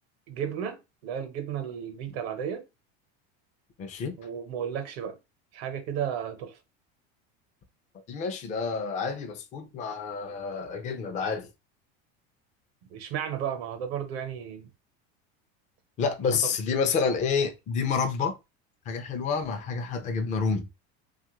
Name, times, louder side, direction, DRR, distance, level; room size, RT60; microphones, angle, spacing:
voice 1, 0.3-2.7 4.2-5.2 5.5-6.6 12.9-14.7 16.2-16.5, right 8 dB, 85° right, 0.9 m, -34 dB
voice 2, 3.8-4.1 8.1-11.5 16.0-18.4 18.9-20.7, left 5 dB, 25° left, 0.4 m, -29 dB
2.8 x 2.4 x 2.9 m
cardioid pair, 150°, 31 cm